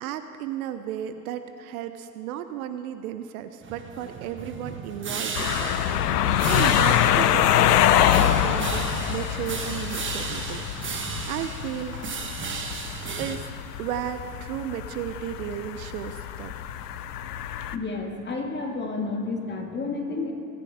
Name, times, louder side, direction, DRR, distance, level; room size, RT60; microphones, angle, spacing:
voice 1, 0.0-5.8 6.1-7.9 8.2-10.7 10.9-12.0 13.2-13.5 13.8-16.5, right 10 dB, 65° right, 10 dB, 0.8 m, -34 dB
sound 1, 3.6-13.4, right 5 dB, 25° right, 1.4 m, -35 dB
sound 2, 5.4-17.8, left 11 dB, 80° left, 0.7 m, -25 dB
voice 2, 17.7-20.3, left 3 dB, 20° left, 1 dB, 2.3 m, -30 dB
22.5 x 9.9 x 3.7 m, 2.6 s
hypercardioid pair, 75°, 46 cm